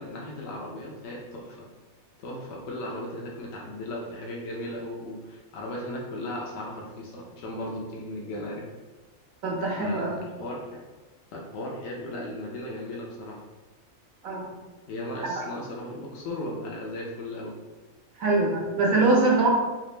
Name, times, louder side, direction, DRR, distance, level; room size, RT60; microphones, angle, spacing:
voice 1, 0.0-1.7 2.2-8.6 9.8-10.6 11.3-13.4 14.9-17.5, left 1 dB, 75° left, -2 dB, 1.0 m, -36 dB
voice 2, 9.4-10.1 14.2-14.5 15.2-15.3 18.2-19.5, right 3 dB, 85° right, -2 dB, 1.4 m, -23 dB
4.0 x 2.5 x 3.2 m, 1.2 s
omnidirectional pair, 1.4 m